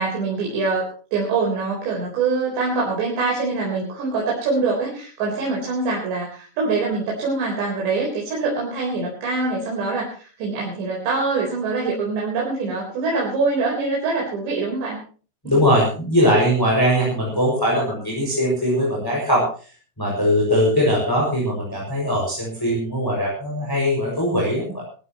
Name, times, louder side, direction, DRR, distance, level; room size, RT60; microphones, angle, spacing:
voice 1, 0.0-15.0 15.4-15.6, right 3 dB, 75° right, -3 dB, 6.5 m, -24 dB
voice 2, 15.4-19.4 20.0-24.8, equal, 5° left, -3 dB, 6.0 m, -20 dB
22.5 x 15.0 x 3.1 m, 0.39 s
omnidirectional pair, 5.0 m